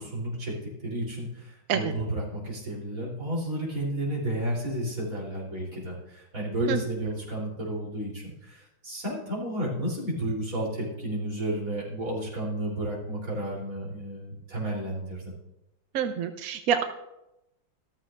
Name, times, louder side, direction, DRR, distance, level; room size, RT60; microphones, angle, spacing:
voice 1, 0.0-15.3, right 1 dB, 45° right, -5 dB, 3.9 m, -32 dB
voice 2, 15.9-16.8, right 8 dB, 65° right, 7 dB, 0.9 m, -26 dB
13.5 x 13.5 x 2.5 m, 0.92 s
omnidirectional pair, 2.0 m